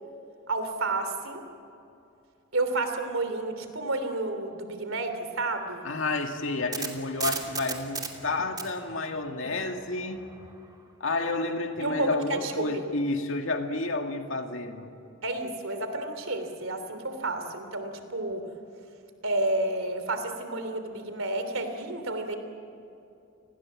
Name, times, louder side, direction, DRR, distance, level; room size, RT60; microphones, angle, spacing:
voice 1, 0.5-1.4 2.5-5.9 11.8-12.8 15.2-18.4 19.2-22.4, right 2 dB, 90° right, 8 dB, 3.2 m, -31 dB
voice 2, 5.8-10.3 11.0-14.9, left 2 dB, 70° left, 4 dB, 2.3 m, -30 dB
sound 1, 6.3-10.6, right 5 dB, 20° right, 2.8 m, -36 dB
30.0 x 20.5 x 7.6 m, 2.7 s
head